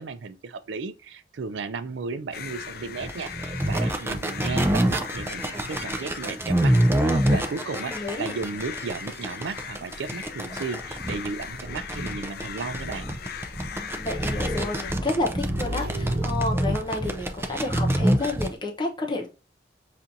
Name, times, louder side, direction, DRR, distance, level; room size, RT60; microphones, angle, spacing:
voice 1, 0.0-6.8 7.3-13.1, right 4 dB, 75° right, 0.4 m, -34 dB
sound 1, 2.3-14.9, left 7 dB, 55° left, 0.4 m, -39 dB
sound 2, 3.0-18.5, right 1 dB, 15° right, 0.4 m, -26 dB
voice 2, 7.9-8.3 14.0-19.3, left 2 dB, 25° left, 0.9 m, -30 dB
Motorcycle / Engine, 10.9-18.0, right 1 dB, 60° right, 1.2 m, -40 dB
5.7 x 2.5 x 2.6 m
head